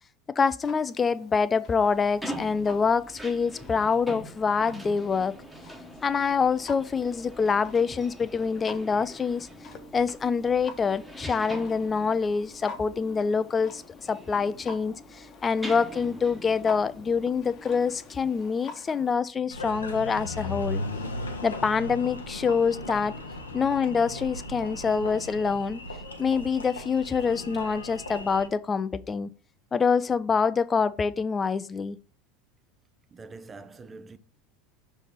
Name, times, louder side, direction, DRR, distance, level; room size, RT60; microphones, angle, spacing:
voice 1, 0.4-5.3 6.0-9.5 9.9-20.8 21.4-23.1 23.5-25.8 26.2-29.3 29.7-32.0, left 5 dB, 25° left, 0.5 m, -26 dB
Clock, 0.6-19.2, left 4 dB, 40° left, 1.0 m, -48 dB
sound 1, 1.8-18.5, equal, 5° right, 1.2 m, -44 dB
Engine, 19.5-28.5, left 2 dB, 90° left, 0.9 m, -37 dB
voice 2, 33.1-34.2, right 3 dB, 25° right, 0.6 m, -44 dB
6.2 x 3.4 x 5.7 m
hypercardioid pair, 80°, 0 cm